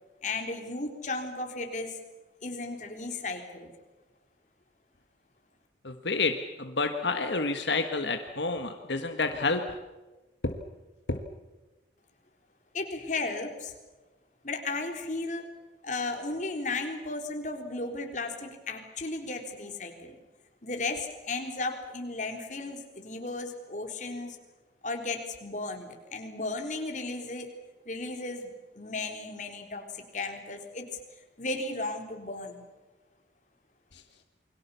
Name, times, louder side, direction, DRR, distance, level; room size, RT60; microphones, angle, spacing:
voice 1, 0.2-2.0 2.4-3.7 12.7-13.7 14.4-15.5 15.8-20.2 20.6-24.4 24.8-27.5 27.9-30.9 31.4-32.7, left 3 dB, 45° left, 4 dB, 3.8 m, -35 dB
voice 2, 5.8-9.6 10.4-10.6 11.1-11.2 33.9-34.0, left 3 dB, 80° left, 5 dB, 1.6 m, -29 dB
29.0 x 22.5 x 7.0 m, 1.2 s
head